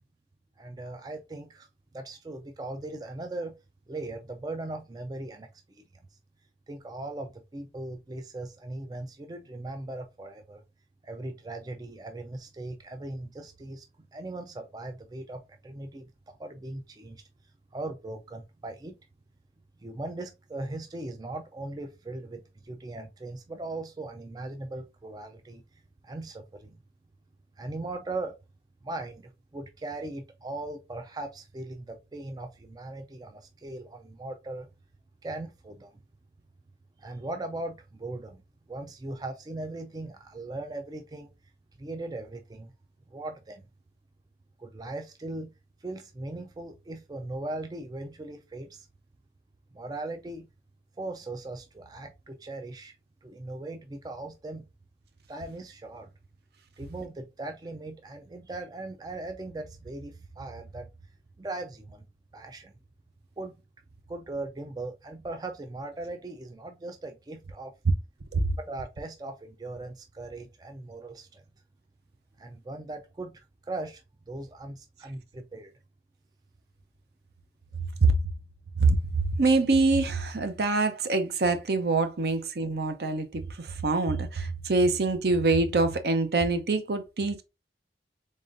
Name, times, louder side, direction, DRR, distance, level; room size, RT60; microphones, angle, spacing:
voice 1, 0.6-1.7 1.9-3.6 3.9-5.8 6.7-10.6 11.0-13.8 14.1-16.1 16.4-17.2 17.7-19.0 19.8-26.8 27.6-28.3 28.8-34.7 35.2-36.0 37.0-38.4 38.7-41.3 41.8-42.7 43.1-43.6 44.6-45.5 45.8-48.9 49.7-50.5 51.0-53.0 53.2-54.7 55.3-56.1 56.8-60.9 61.4-62.0 62.3-62.7 63.4-63.6 64.1-67.7 68.6-71.4 72.4-75.7, right 2 dB, 20° right, 0.3 m, -39 dB
voice 2, 79.4-87.4, right 3 dB, 65° right, 0.6 m, -25 dB
3.8 x 3.7 x 2.5 m
head